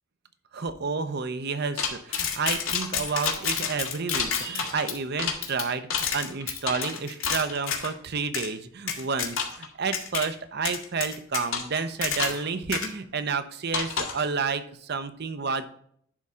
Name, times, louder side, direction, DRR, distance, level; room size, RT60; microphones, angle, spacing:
voice 1, 0.5-15.7, right 5 dB, 55° right, 11 dB, 0.7 m, -30 dB
sound 1, 1.8-7.9 8.3-8.5 8.9-9.7 9.9-10.3 10.7-12.5 12.7-12.9 13.7-14.2, left 7 dB, 85° left, 1.7 m, -29 dB
11.0 x 3.7 x 5.5 m, 0.65 s
head